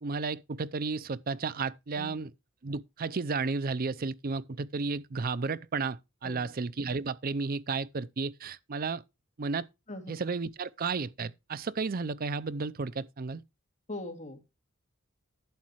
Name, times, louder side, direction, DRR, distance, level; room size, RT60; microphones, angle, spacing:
voice 1, 0.0-2.3 2.6-9.0 9.4-9.7 10.1-13.4, right 4 dB, 45° right, 0.6 m, -33 dB
voice 2, 9.9-10.2 13.9-14.4, left 1 dB, 35° left, 2.4 m, -41 dB
11.5 x 8.4 x 3.1 m
head